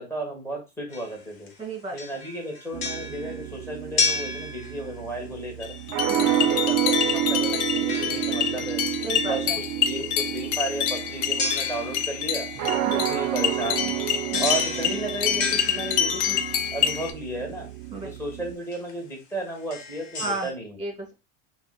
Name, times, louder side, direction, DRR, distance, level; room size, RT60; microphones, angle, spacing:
voice 1, 0.0-1.5 1.9-5.8 6.2-8.8 9.3-12.5 12.9-14.0 14.4-16.4 16.7-17.7 18.0-20.8, right 1 dB, 5° left, 0 dB, 1.2 m, -34 dB
sound 1, 0.9-1.6 2.0-5.2 7.9-8.8 11.4-12.4 14.3-16.4 18.0-18.1 18.7-18.9 19.6-20.5, left 4 dB, 70° left, 1.0 m, -32 dB
voice 2, 1.6-1.9 6.1-6.5 9.0-9.6 12.8-13.2 14.3-14.5 17.9-18.1 20.2-20.5 20.8-21.1, right 3 dB, 15° right, 2 dB, 1.3 m, -33 dB
sound 2, 2.7-18.5, right 11 dB, 45° right, 0.5 m, -30 dB
sound 3, 5.6-17.1, left 9 dB, 55° left, 0.5 m, -27 dB
3.5 x 2.1 x 2.2 m, 0.26 s
supercardioid pair, 105°, 50 cm